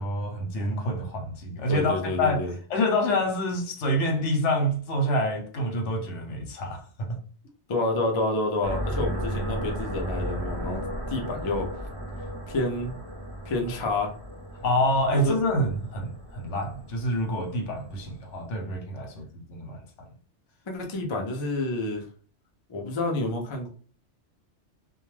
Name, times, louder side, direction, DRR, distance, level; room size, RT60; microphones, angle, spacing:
voice 1, 0.0-7.2 14.6-19.2 19.5-19.8, left 1 dB, 75° left, 1.0 m, -27 dB
voice 2, 1.5-2.5 7.7-11.7 12.2-12.9 13.4-14.1 15.1-15.4 20.7-22.0 22.7-23.7, left 2 dB, 45° left, 0.3 m, -29 dB
sound 1, 8.6-18.2, equal, 30° right, 0.8 m, -35 dB
2.2 x 2.1 x 3.1 m
omnidirectional pair, 1.2 m